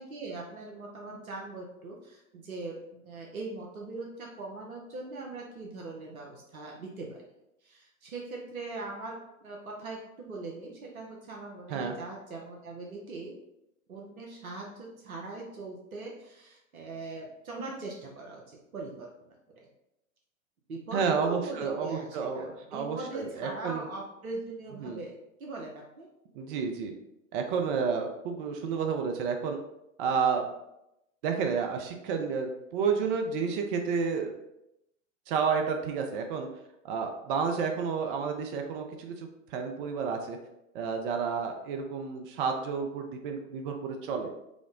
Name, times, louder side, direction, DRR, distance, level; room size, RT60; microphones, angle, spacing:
voice 1, 0.0-7.2 7.6-13.3 13.9-19.7 20.7-26.1, right 3 dB, 80° right, -1 dB, 0.8 m, -41 dB
voice 2, 20.9-23.8 24.8-25.0 26.3-26.9 27.3-29.6 30.0-30.5 31.2-34.3 35.3-36.5 36.8-40.4 40.7-44.3, right 5 dB, 40° right, 4 dB, 0.5 m, -30 dB
5.0 x 2.0 x 3.6 m, 0.86 s
figure-of-eight pair, 95°, 41 cm